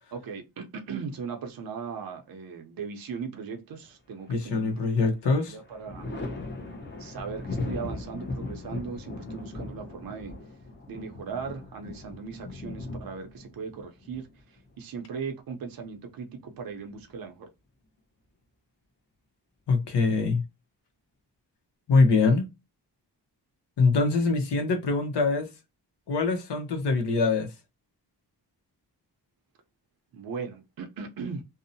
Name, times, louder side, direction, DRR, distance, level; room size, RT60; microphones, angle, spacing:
voice 1, 0.1-4.9 5.2-6.1 7.0-10.3 10.9-17.5 30.1-31.4, right 5 dB, 55° right, 0.6 m, -38 dB
Thunder, 4.2-5.0 5.4-14.9 16.4-17.3, left 2 dB, 25° left, 0.7 m, -38 dB
voice 2, 4.3-5.6 19.7-20.4 21.9-22.4 23.8-25.5 26.1-27.5, left 3 dB, 75° left, 0.7 m, -23 dB
2.6 x 2.0 x 2.6 m
wide cardioid pair, 105°, 42 cm